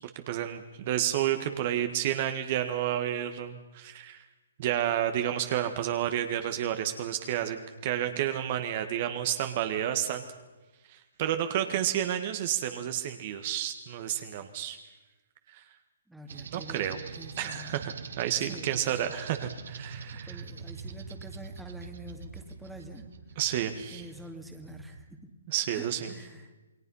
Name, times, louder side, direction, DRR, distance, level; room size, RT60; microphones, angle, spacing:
voice 1, 0.3-4.2 4.6-10.2 10.9-14.8 15.5-15.6 16.5-17.0 17.4-20.4 23.4-24.0 25.5-26.1, right 11 dB, 40° right, 7 dB, 1.7 m, -30 dB
voice 2, 16.1-17.7 18.4-18.7 20.2-23.1 23.9-25.3 25.7-26.5, right 1 dB, 5° right, 3 dB, 2.4 m, -46 dB
sound 1, 16.3-25.0, right 5 dB, 65° right, 2.1 m, -44 dB
28.5 x 20.5 x 5.6 m, 1.2 s
hypercardioid pair, 145°, 0 cm